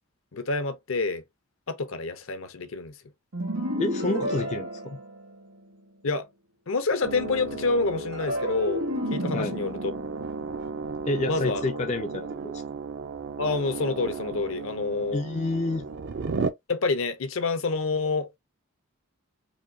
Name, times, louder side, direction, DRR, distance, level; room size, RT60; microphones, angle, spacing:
voice 1, 0.3-1.2 1.7-2.9 6.0-6.3 6.7-9.9 11.2-11.7 13.4-15.2 16.7-18.4, left 3 dB, 65° left, 0.7 m, -28 dB
sound 1, 3.3-5.7 8.1-11.5, equal, 85° right, 1.6 m, -32 dB
voice 2, 3.8-5.0 9.3-9.5 11.1-12.6 15.1-15.9, left 2 dB, 30° left, 0.3 m, -29 dB
sound 2, 7.0-16.5, right 4 dB, 55° right, 0.4 m, -35 dB
5.0 x 2.2 x 2.7 m
head